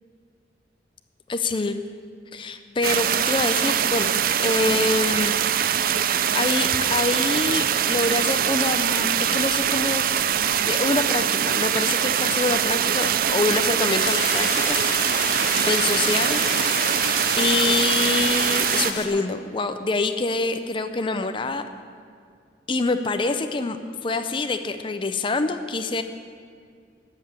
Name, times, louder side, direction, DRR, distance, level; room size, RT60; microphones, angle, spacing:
voice 1, 1.3-1.8 2.3-4.1 4.4-5.3 6.3-10.2 10.6-15.0 15.6-16.9 17.4-21.6 22.7-26.0, left 3 dB, 30° left, 8 dB, 0.5 m, -25 dB
sound 1, 2.8-18.9, right 9 dB, 50° right, 0.4 m, -23 dB
sound 2, 14.0-19.1, left 4 dB, 60° left, 1.9 m, -30 dB
14.0 x 5.7 x 9.5 m, 2.2 s
head